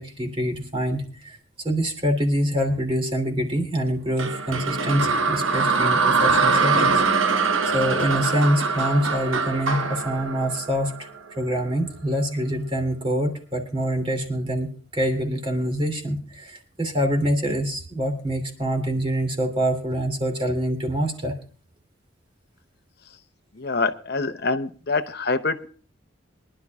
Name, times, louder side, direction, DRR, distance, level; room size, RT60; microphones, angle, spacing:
voice 1, 0.0-7.5 7.7-11.1 11.4-21.3, equal, 25° right, 4 dB, 2.8 m, -25 dB
sound 1, 4.2-11.4, right 4 dB, 85° right, 1.2 m, -23 dB
voice 2, 23.5-25.7, left 3 dB, 55° left, 9 dB, 0.8 m, -26 dB
24.0 x 11.5 x 2.4 m, 0.40 s
head